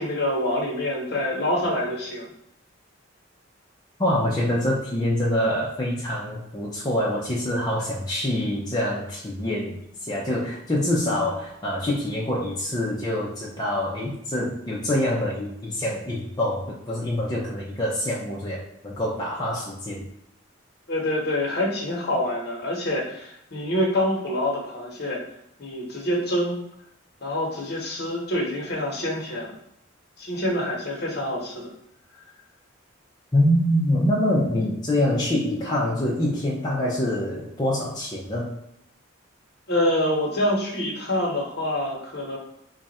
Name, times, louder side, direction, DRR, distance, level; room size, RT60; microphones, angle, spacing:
voice 1, 0.0-2.3 20.9-25.2 25.6-26.6 27.2-29.5 30.2-31.7 39.7-42.4, left 1 dB, 50° left, -2 dB, 1.0 m, -26 dB
voice 2, 4.0-20.1 33.3-38.6, left 1 dB, 20° left, -5 dB, 0.5 m, -25 dB
3.2 x 2.4 x 4.0 m, 0.77 s
head